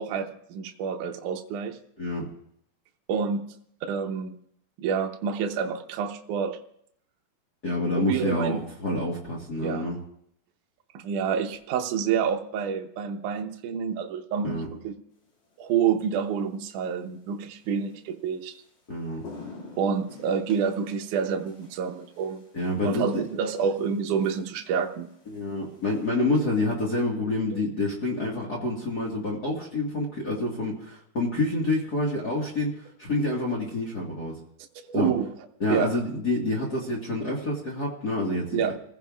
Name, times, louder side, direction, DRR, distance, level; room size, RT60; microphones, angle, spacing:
voice 1, 0.0-1.8 3.1-3.5 3.9-4.3 4.8-6.6 8.0-8.6 9.6-9.9 10.9-14.9 15.6-18.6 19.8-22.4 22.8-25.1 34.8-35.3 35.7-35.9 38.5-38.7, right 7 dB, 70° right, 4 dB, 1.9 m, -28 dB
voice 2, 2.0-2.3 7.6-10.0 14.4-14.7 18.9-19.2 22.5-23.2 25.3-34.3 34.9-35.1 35.6-38.6, left 2 dB, 45° left, -3 dB, 1.2 m, -28 dB
sound 1, 15.5-15.8 17.9-18.0 18.5-18.7 19.0-26.1, left 3 dB, 85° left, 6.0 m, -49 dB
29.5 x 15.5 x 2.5 m, 0.69 s
omnidirectional pair, 4.6 m